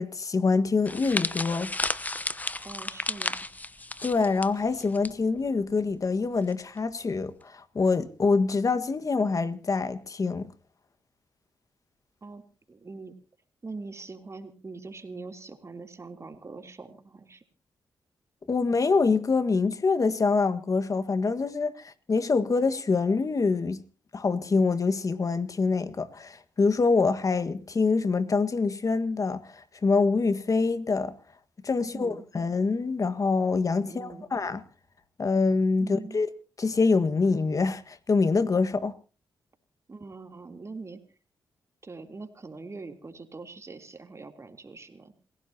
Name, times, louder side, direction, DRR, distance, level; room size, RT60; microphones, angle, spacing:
voice 1, 0.0-1.7 4.0-10.5 18.5-23.8 24.1-31.1 31.6-34.6 35.2-36.3 36.6-39.0, left 4 dB, 45° left, 1.6 m, -25 dB
sound 1, 0.9-5.1 5.4-5.6 6.5-6.8, left 2 dB, 20° left, 1.0 m, -33 dB
voice 2, 2.6-3.4 12.2-13.1 13.6-17.4 31.9-32.2 33.8-34.3 35.8-36.3 39.9-41.0 41.8-45.1, right 3 dB, 35° right, 3.3 m, -43 dB
28.0 x 16.5 x 2.9 m
supercardioid pair, 55°, 8 cm